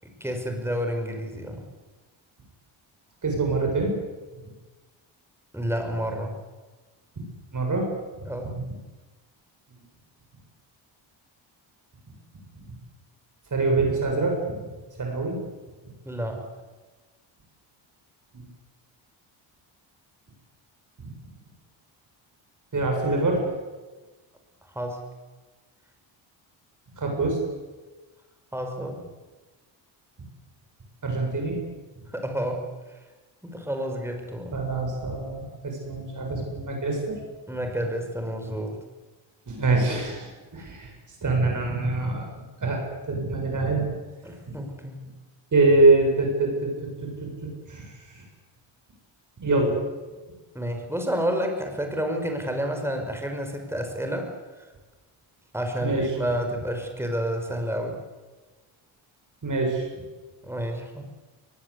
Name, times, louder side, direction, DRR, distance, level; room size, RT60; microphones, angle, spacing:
voice 1, 0.0-1.6 5.5-6.3 8.3-8.6 16.1-16.4 24.7-25.0 28.5-29.0 32.1-32.6 33.4-34.6 37.5-38.8 40.6-40.7 44.2-45.1 50.5-54.3 55.5-58.0 60.4-61.0, equal, 5° right, 4 dB, 5.6 m, -30 dB
voice 2, 3.2-4.0 7.2-7.3 7.5-7.9 8.2-8.3 9.7-9.8 12.6-12.8 13.5-14.4 15.0-15.4 18.3-18.5 21.0-21.1 22.7-23.4 27.0-27.4 31.0-31.6 34.5-37.2 39.5-40.9 41.2-42.2 42.6-43.9 44.5-44.6 45.5-46.7 47.2-47.3 47.7-48.2 49.4-49.8 55.8-56.1 59.4-59.9, right 2 dB, 40° right, 1 dB, 7.6 m, -24 dB
22.5 x 20.0 x 8.5 m, 1.3 s
cardioid pair, 105°, 48 cm